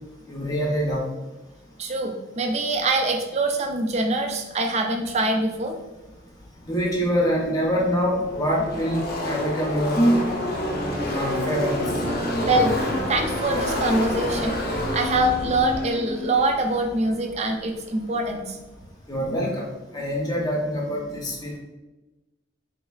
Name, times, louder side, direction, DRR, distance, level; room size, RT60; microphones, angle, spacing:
voice 1, 0.3-1.1 6.7-10.3 11.0-11.8 19.1-19.7 19.9-21.6, equal, 20° left, -2 dB, 0.7 m, -24 dB
voice 2, 1.8-5.7 12.5-12.8 13.1-14.6 14.9-18.6, right 2 dB, 35° right, 4 dB, 0.4 m, -24 dB
Car passing by / Race car auto racing, 7.0-7.1 7.3-17.9, left 1 dB, 55° left, 0.7 m, -28 dB
4.1 x 3.1 x 2.3 m, 1.1 s
head